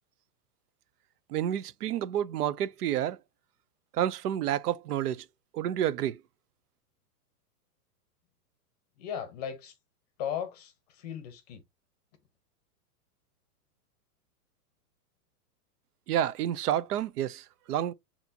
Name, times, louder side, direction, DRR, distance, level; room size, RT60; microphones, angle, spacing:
voice 1, 1.3-3.2 3.9-5.2 5.5-6.2 16.1-17.9, right 11 dB, 80° right, 0.7 m, -29 dB
voice 2, 9.0-9.7 10.2-11.6, left 8 dB, 25° left, 0.7 m, -37 dB
6.8 x 2.9 x 2.7 m
supercardioid pair, 170°, 46 cm